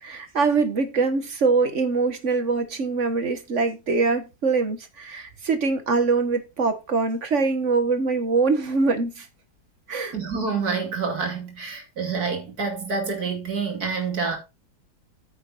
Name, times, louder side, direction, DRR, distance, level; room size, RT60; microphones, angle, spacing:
voice 1, 0.0-9.3 9.9-10.1, right 4 dB, 50° right, 1.7 m, -23 dB
voice 2, 10.1-14.4, right 5 dB, 65° right, 3.3 m, -27 dB
9.5 x 6.2 x 4.2 m
omnidirectional pair, 1.7 m